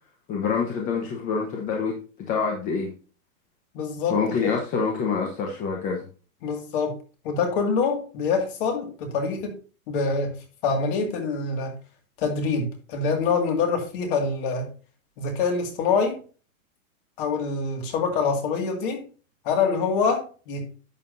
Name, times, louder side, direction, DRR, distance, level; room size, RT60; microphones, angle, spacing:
voice 1, 0.3-2.0 2.3-2.9 4.1-6.1, left 5 dB, 20° left, 1.0 m, -26 dB
voice 2, 3.7-4.5 6.4-7.0 7.2-9.6 9.9-11.8 12.2-14.7 15.2-16.2 17.2-19.1 19.4-20.7, left 5 dB, 40° left, 2.2 m, -25 dB
10.5 x 7.4 x 2.7 m
supercardioid pair, 170°, 43 cm